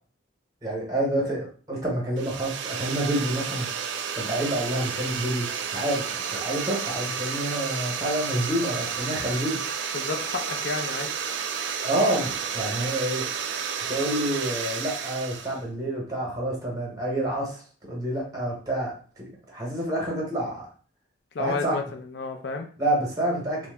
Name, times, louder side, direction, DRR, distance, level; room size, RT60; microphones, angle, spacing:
voice 1, 0.6-3.7 4.1-9.6 11.8-13.3 13.9-17.6 17.9-20.7 21.4-21.8 22.8-23.7, right 1 dB, 15° right, -2 dB, 0.8 m, -28 dB
sound 1, 2.2-15.6, right 7 dB, 65° right, 0.3 m, -31 dB
voice 2, 9.9-11.1 21.3-22.7, left 4 dB, 55° left, 4 dB, 0.4 m, -31 dB
2.7 x 2.1 x 3.3 m, 0.43 s
head